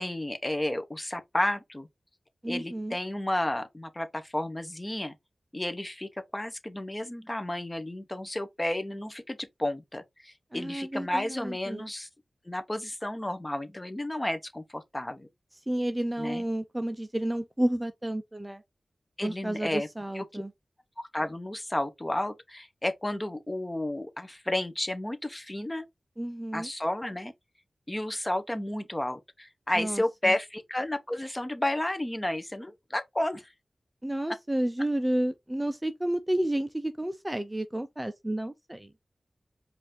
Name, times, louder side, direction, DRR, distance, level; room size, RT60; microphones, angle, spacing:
voice 1, 0.0-1.9 2.5-5.1 5.5-12.1 12.5-15.3 16.2-16.4 19.2-19.9 20.1-20.4 21.0-25.9 26.5-27.3 27.9-33.5 34.3-34.4, left 1 dB, 20° left, 0.7 m, -32 dB
voice 2, 2.4-2.9 10.5-11.9 15.7-18.6 19.2-20.5 26.2-26.7 29.8-30.4 34.0-38.9, right 1 dB, 15° right, 0.5 m, -31 dB
4.9 x 2.5 x 3.6 m
wide cardioid pair, 90°, 0 cm